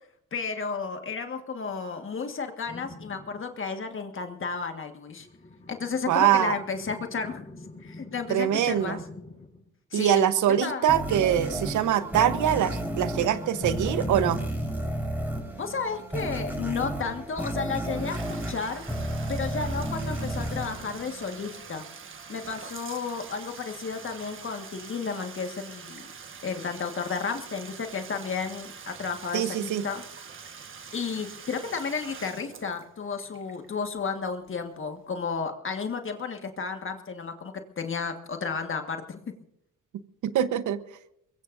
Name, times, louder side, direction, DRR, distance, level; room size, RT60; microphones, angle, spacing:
voice 1, 0.3-5.3 5.7-7.4 7.8-9.0 9.9-10.3 10.6-10.9 15.5-18.8 19.3-21.8 22.3-26.1 26.4-30.0 30.9-39.2, left 5 dB, 45° left, 5 dB, 1.7 m, -32 dB
sound 1, 2.6-3.4 5.1-9.6 11.1-14.7, left 2 dB, 25° left, 6.6 m, -44 dB
voice 2, 6.1-6.6 8.3-9.0 9.9-14.4 29.3-29.8 40.2-40.8, right 10 dB, 75° right, 12 dB, 1.1 m, -24 dB
sound 2, 10.9-21.7, right 1 dB, 5° right, 5.1 m, -32 dB
Bathtub (filling or washing), 17.7-34.5, right 6 dB, 40° right, 1.5 m, -45 dB
22.5 x 22.0 x 2.7 m, 0.76 s
cardioid pair, 90°, 30 cm